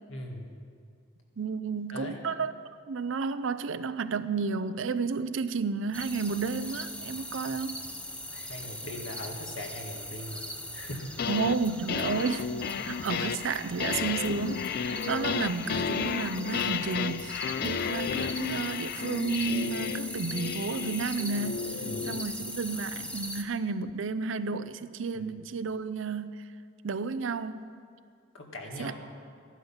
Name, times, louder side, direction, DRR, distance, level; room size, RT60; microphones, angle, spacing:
voice 1, 0.1-0.5 1.9-2.2 8.3-10.4 10.7-11.3 12.8-12.9 21.8-22.1 28.3-28.9, left 1 dB, 70° left, 1 dB, 2.0 m, -40 dB
voice 2, 1.4-2.5 2.9-7.7 11.3-21.7 22.0-26.4 26.8-27.7 28.8-28.9, right 4 dB, 65° right, 13 dB, 0.5 m, -32 dB
sound 1, 5.9-23.4, left 1 dB, 5° left, 0.6 m, -41 dB
sound 2, 10.9-11.6 11.9-22.3, left 6 dB, 50° left, 0.3 m, -33 dB
14.5 x 11.5 x 5.6 m, 2.2 s
head